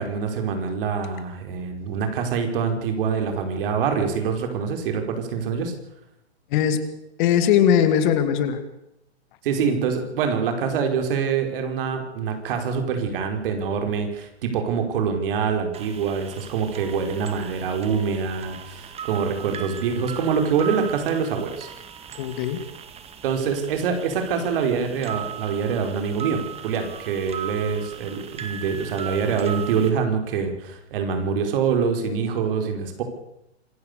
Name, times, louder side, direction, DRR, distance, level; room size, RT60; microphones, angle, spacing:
voice 1, 0.0-5.7 9.4-21.7 23.2-33.0, right 6 dB, 55° right, 5 dB, 4.8 m, -25 dB
voice 2, 6.5-6.9 7.2-8.6 22.2-22.6, left 9 dB, 45° left, 10 dB, 2.7 m, -20 dB
sound 1, 15.7-29.9, right 8 dB, 20° right, 2.0 m, -38 dB
26.0 x 15.0 x 6.9 m, 0.84 s
hypercardioid pair, 130°, 33 cm